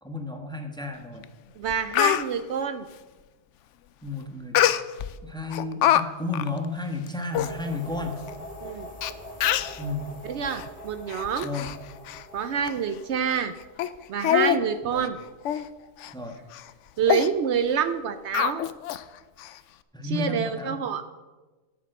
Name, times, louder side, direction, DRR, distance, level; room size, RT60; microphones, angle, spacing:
voice 1, 0.0-1.2 4.0-4.6 5.2-8.2 9.8-10.1 11.4-11.7 14.8-15.0 16.1-16.3 19.9-20.8, left 3 dB, 5° left, 3 dB, 1.2 m, -32 dB
Speech, 1.2-1.3 1.7-2.2 4.6-5.1 5.5-6.0 6.3-6.5 7.1-7.2 7.3-7.5 8.3-8.4 9.0-9.1 9.4-9.8 10.5-10.7 11.1-11.8 12.1-12.2 12.7-12.8 13.3-13.5 13.8-13.9 14.2-14.6 14.9-15.1 15.5-15.7 16.0-16.1 16.5-16.7 17.1-17.3 18.3-19.0 19.4-19.5, left 12 dB, 75° left, 0.9 m, -24 dB
voice 2, 1.6-2.8 8.6-8.9 10.2-11.5 12.3-13.5 14.1-15.2 17.0-18.6 20.0-21.0, right 7 dB, 70° right, 11 dB, 0.8 m, -27 dB
sound 1, 7.3-14.2, left 1 dB, 30° left, 1.7 m, -43 dB
10.5 x 8.5 x 6.6 m, 1.2 s
omnidirectional pair, 1.3 m